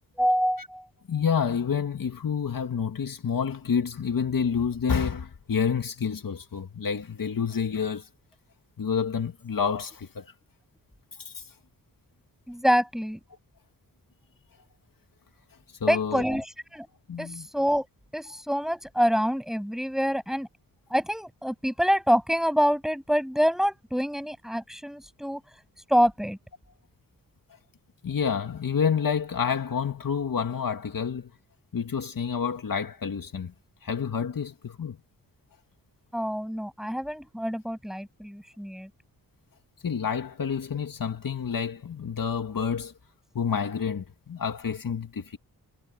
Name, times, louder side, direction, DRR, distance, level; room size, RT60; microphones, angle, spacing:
voice 1, 0.2-0.8 12.5-13.2 15.9-16.9 17.2-17.9 18.1-20.5 20.9-25.4 25.9-26.4 36.1-38.9, equal, ahead, 7.9 m, -26 dB
voice 2, 1.1-8.1 8.8-10.3 11.2-11.5 15.8-16.2 17.1-17.5 28.0-31.3 31.7-33.5 33.8-35.0 39.8-42.9 43.3-45.4, left 6 dB, 65° left, 2.1 m, -28 dB
wide cardioid pair, 85°, 36 cm